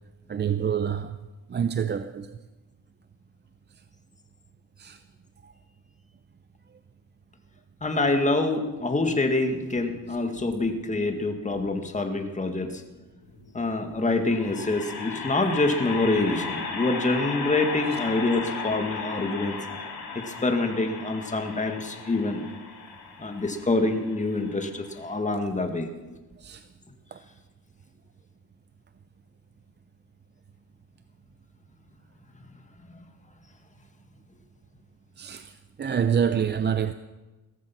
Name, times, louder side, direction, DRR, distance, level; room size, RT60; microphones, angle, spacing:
voice 1, 0.3-1.2 1.5-2.4 4.8-5.0 5.4-5.5 26.4-26.6 27.1-27.2 35.2-36.9, right 8 dB, 30° right, 0.5 m, -27 dB
voice 2, 7.8-12.8 13.5-19.6 20.1-22.4 23.2-25.9, left 2 dB, 20° left, 2.0 m, -26 dB
sound 1, 13.2-25.0, left 4 dB, 75° left, 4.3 m, -36 dB
17.0 x 14.5 x 6.0 m
cardioid pair, 115°, 38 cm